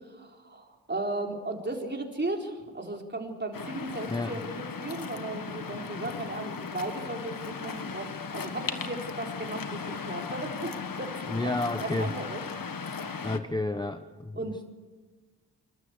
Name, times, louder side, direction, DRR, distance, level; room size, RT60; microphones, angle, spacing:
voice 1, 0.1-11.5 11.8-12.4 12.7-13.3 14.4-14.6, right 2 dB, 25° right, 1 dB, 4.1 m, -36 dB
Waves surf, 3.5-13.4, left 5 dB, 55° left, 1.6 m, -37 dB
voice 2, 4.1-4.4 11.3-12.1 13.2-14.4, left 2 dB, 10° left, 9 dB, 1.0 m, -30 dB
26.5 x 13.0 x 8.2 m, 1.3 s
cardioid pair, 65°, 41 cm